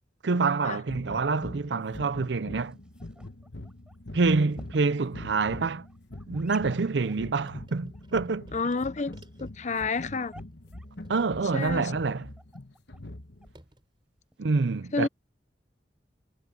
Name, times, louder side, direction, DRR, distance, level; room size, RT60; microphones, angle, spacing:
voice 1, 0.2-2.8 4.1-5.8 6.3-8.5 11.1-12.3 14.4-15.1, right 4 dB, 70° right, 0.6 m, -26 dB
sound 1, 0.9-13.6, left 1 dB, 65° left, 1.5 m, -44 dB
sound 2, 2.2-14.4, right 1 dB, 5° right, 5.5 m, -58 dB
sound 3, 7.4-14.0, right 1 dB, 25° right, 4.5 m, -60 dB
voice 2, 8.5-10.3 11.5-11.9 14.9-15.1, left 4 dB, 40° left, 0.8 m, -30 dB
head